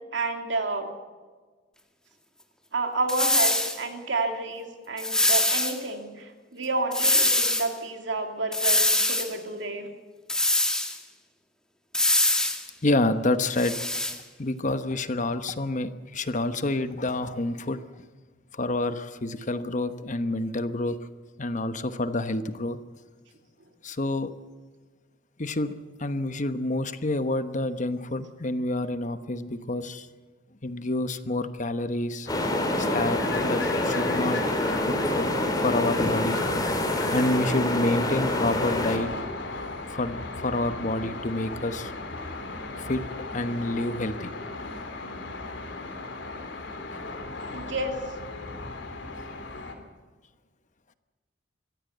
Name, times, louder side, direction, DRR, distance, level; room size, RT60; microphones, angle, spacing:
voice 1, 0.1-0.9 2.7-9.9 47.5-48.0, right 2 dB, 70° right, 4 dB, 2.8 m, -30 dB
sound 1, 3.1-3.8 5.0-5.8 6.9-7.7 8.5-9.3 10.3-11.0 11.9-12.6 13.4-14.2, left 1 dB, 5° left, 1.9 m, -23 dB
voice 2, 12.8-13.8 14.4-17.8 18.5-21.0 21.4-22.8 23.8-24.3 25.4-25.7 26.0-30.1 30.6-32.3 32.8-34.4 34.8-35.3 35.6-36.4 37.1-39.1 39.9-41.9 42.8-43.0 43.3-44.3, left 2 dB, 40° left, 11 dB, 1.1 m, -28 dB
sound 2, 32.2-49.7, left 3 dB, 75° left, 3.2 m, -37 dB
sound 3, 32.3-39.0, left 1 dB, 20° left, 3.0 m, -26 dB
23.5 x 15.5 x 8.0 m, 1.4 s
head